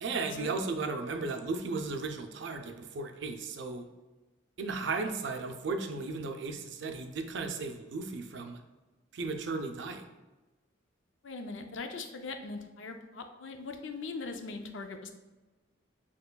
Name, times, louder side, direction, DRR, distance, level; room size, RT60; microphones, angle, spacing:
voice 1, 0.0-3.9 4.6-8.6 9.1-10.0, right 3 dB, 60° right, 5 dB, 0.5 m, -35 dB
voice 2, 11.2-15.1, left 3 dB, 70° left, 6 dB, 0.5 m, -40 dB
6.7 x 3.0 x 2.2 m, 1.2 s
head